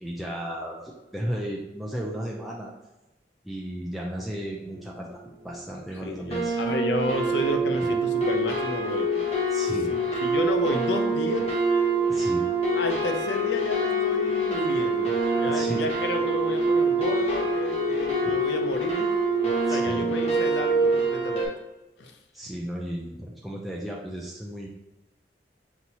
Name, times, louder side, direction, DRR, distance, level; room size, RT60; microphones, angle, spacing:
voice 1, 0.0-2.7 3.4-6.6 9.5-9.9 12.1-12.5 15.5-15.8 18.2-18.3 19.7-20.1 22.3-24.7, equal, ahead, -4 dB, 0.4 m, -34 dB
sound 1, 5.1-5.2 5.4-5.8 6.3-21.4, right 2 dB, 35° left, 0.9 m, -25 dB
voice 2, 6.0-9.3 9.9-11.5 12.7-15.1 15.3-19.1 19.7-21.5 22.0-22.2, left 2 dB, 80° left, 5 dB, 0.5 m, -32 dB
5.9 x 2.8 x 2.8 m, 1.0 s
head